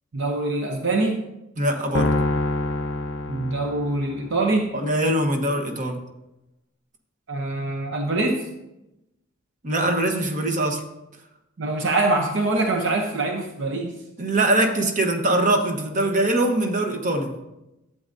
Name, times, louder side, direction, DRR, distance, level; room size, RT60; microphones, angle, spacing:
voice 1, 0.1-1.2 3.3-4.7 7.3-8.5 11.6-13.9, right 2 dB, 60° right, 2 dB, 0.8 m, -24 dB
voice 2, 1.6-2.1 4.7-6.0 9.6-10.8 14.2-17.3, right 1 dB, 35° right, 4 dB, 1.1 m, -22 dB
sound 1, 1.9-4.3, left 2 dB, 60° left, 0.6 m, -25 dB
11.5 x 8.7 x 2.7 m, 0.92 s
head